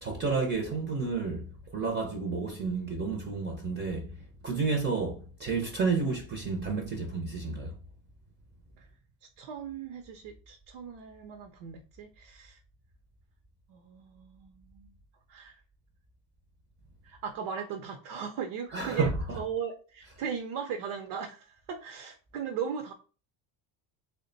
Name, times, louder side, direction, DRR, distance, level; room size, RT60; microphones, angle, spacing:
voice 1, 0.0-4.1 4.4-7.7 18.7-19.4, right 4 dB, 25° right, 0.6 m, -31 dB
voice 2, 9.4-12.6 13.7-14.9 15.3-15.6 17.0-19.1 19.4-22.9, right 7 dB, 75° right, 0.7 m, -37 dB
3.6 x 2.2 x 3.8 m
cardioid pair, 145°, 43 cm